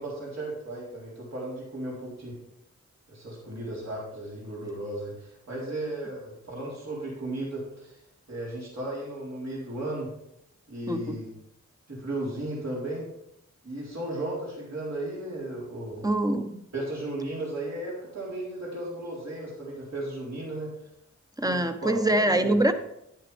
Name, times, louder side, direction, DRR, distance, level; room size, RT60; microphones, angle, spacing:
voice 1, 0.0-2.4 3.1-8.0 8.3-10.1 10.7-11.3 11.9-13.1 13.6-16.1 16.7-20.7 21.5-22.6, right 1 dB, 65° right, -6 dB, 4.0 m, -35 dB
voice 2, 10.9-11.2 16.0-16.6 21.4-22.7, right 1 dB, 10° right, 7 dB, 1.1 m, -24 dB
10.5 x 10.0 x 3.5 m, 0.79 s
cardioid pair, 50°, 30 cm